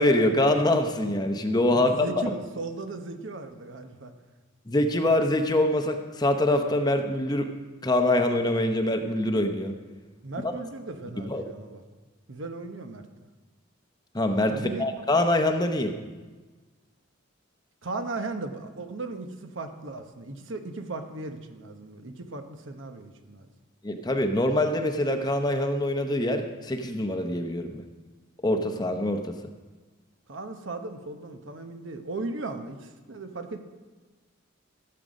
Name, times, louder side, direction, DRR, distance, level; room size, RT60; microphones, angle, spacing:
voice 1, 0.0-2.2 4.7-7.5 7.8-9.7 10.4-10.5 11.2-11.5 14.1-16.0 23.8-27.8 28.4-29.4, left 1 dB, 20° left, 6 dB, 0.7 m, -24 dB
voice 2, 1.7-4.1 10.2-11.8 12.3-13.1 14.5-14.9 17.8-23.5 30.3-33.6, right 3 dB, 65° right, 7 dB, 0.9 m, -37 dB
14.5 x 7.7 x 5.2 m, 1.3 s
head